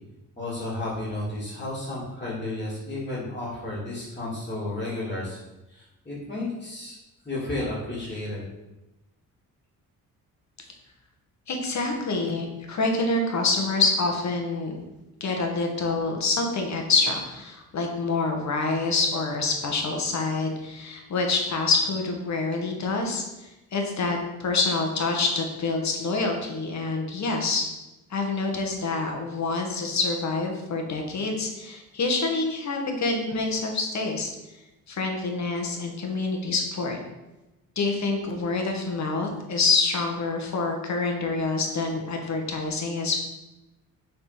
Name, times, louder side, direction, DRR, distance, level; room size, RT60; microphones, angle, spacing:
voice 1, 0.4-5.4 5.7-7.0 7.2-8.4 10.6-10.7, left 2 dB, 20° left, -11 dB, 2.8 m, -32 dB
voice 2, 11.5-14.8 15.2-23.2 23.7-27.7 28.1-34.3 34.9-37.0 37.7-43.2, left 3 dB, 50° left, 2 dB, 1.7 m, -26 dB
7.0 x 4.4 x 5.8 m, 1.0 s
cardioid pair, 110°, 34 cm